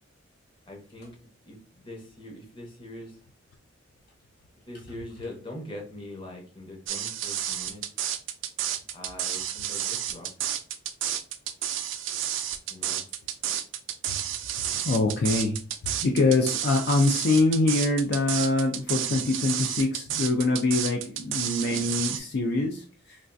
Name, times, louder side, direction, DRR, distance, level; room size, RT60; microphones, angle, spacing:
voice 1, 0.7-3.2 4.6-7.8 8.9-10.5 12.7-13.0, left 1 dB, 25° left, 0 dB, 0.8 m, -42 dB
sound 1, 6.9-22.2, right 10 dB, 65° right, 0.3 m, -31 dB
voice 2, 14.8-15.6 15.8-23.2, left 2 dB, 55° left, 2 dB, 0.4 m, -24 dB
3.3 x 2.4 x 2.5 m, 0.38 s
head